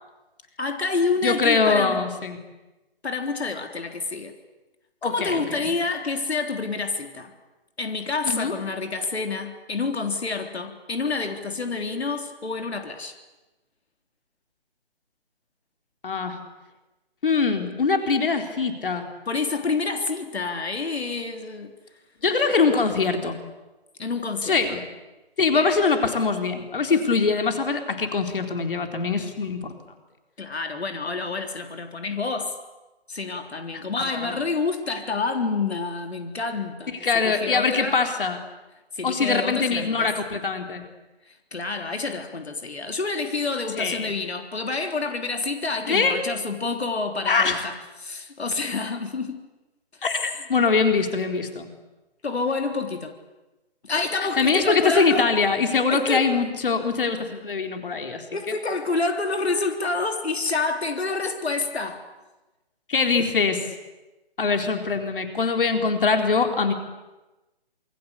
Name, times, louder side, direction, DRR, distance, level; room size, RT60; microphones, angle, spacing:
voice 1, 0.6-2.0 3.0-4.3 5.0-7.3 7.8-13.1 19.3-21.7 24.0-24.8 25.5-25.8 30.4-32.6 33.1-38.0 38.9-40.1 41.3-47.7 48.0-49.4 52.2-53.1 53.8-55.3 55.9-56.3 58.3-62.1, left 3 dB, 85° left, 5 dB, 3.8 m, -28 dB
voice 2, 1.2-2.4 5.0-5.6 8.3-8.5 16.0-16.4 17.2-19.1 22.2-23.4 24.4-24.8 25.4-29.7 33.7-34.4 37.0-38.4 39.0-40.8 43.8-44.1 45.9-46.2 47.3-47.7 50.0-51.7 54.4-58.2 62.9-63.6 64.4-66.7, left 4 dB, 55° left, 5 dB, 4.1 m, -23 dB
27.5 x 25.0 x 8.4 m, 1.1 s
hypercardioid pair, 170°, 31 cm